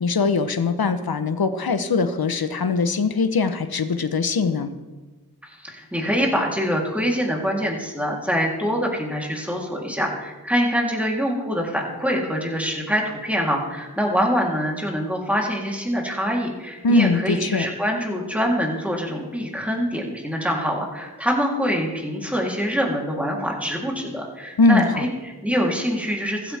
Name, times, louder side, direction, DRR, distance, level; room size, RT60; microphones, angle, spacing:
voice 1, 0.0-4.7 16.8-17.7 24.6-25.1, left 3 dB, 70° left, 10 dB, 1.1 m, -21 dB
voice 2, 5.4-26.6, equal, 5° right, -2 dB, 3.5 m, -24 dB
15.0 x 13.0 x 3.6 m, 1.2 s
cardioid pair, 50°, 38 cm